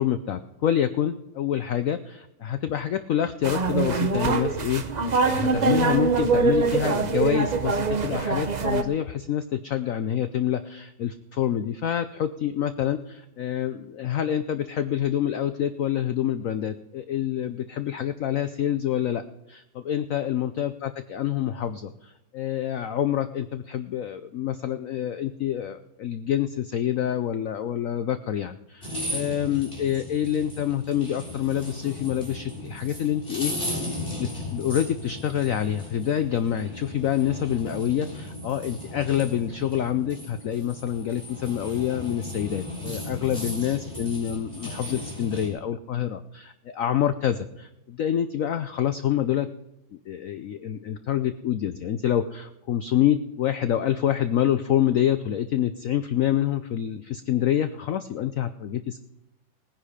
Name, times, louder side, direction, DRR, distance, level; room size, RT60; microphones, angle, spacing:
voice 1, 0.0-4.8 5.2-19.2 19.5-33.5 34.2-49.5 50.1-59.0, left 10 dB, 85° left, 11 dB, 0.7 m, -27 dB
sound 1, 3.4-8.8, right 4 dB, 70° right, 0.4 m, -24 dB
sound 2, 28.8-45.5, left 1 dB, 25° left, 4.5 m, -36 dB
18.0 x 10.0 x 5.0 m, 0.87 s
omnidirectional pair, 2.1 m